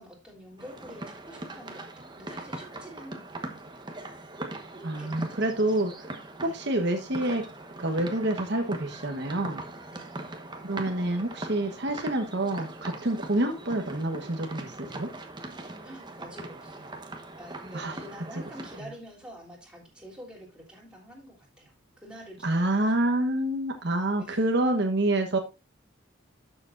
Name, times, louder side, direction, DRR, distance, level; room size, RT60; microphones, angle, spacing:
voice 1, 0.0-4.0 5.0-5.8 6.4-6.5 9.9-10.2 15.8-17.0 17.4-22.9 24.2-24.4, equal, 5° right, 3.4 m, -48 dB
sound 1, 0.6-18.8, right 2 dB, 20° right, 1.2 m, -41 dB
voice 2, 4.8-6.0 6.4-7.5 7.8-9.6 10.6-15.1 17.7-18.0 22.4-25.4, right 1 dB, 55° right, 1.2 m, -27 dB
12.0 x 7.0 x 2.5 m
head